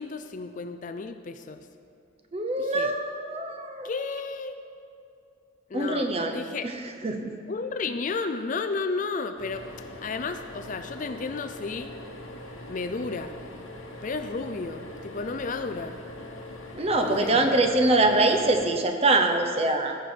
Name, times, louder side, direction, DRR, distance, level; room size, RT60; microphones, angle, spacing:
voice 1, 0.0-1.7 2.6-2.9 3.8-4.6 5.7-6.7 7.5-9.7 10.0-11.9 12.7-13.3 14.0-16.0 17.0-17.7, left 4 dB, 40° left, 9 dB, 0.4 m, -33 dB
voice 2, 2.3-3.9 5.7-7.3 16.7-20.0, right 2 dB, 30° right, 5 dB, 0.8 m, -24 dB
sound 1, 9.4-18.7, left 1 dB, 85° left, 1.2 m, -42 dB
15.0 x 6.7 x 4.5 m, 2.6 s
head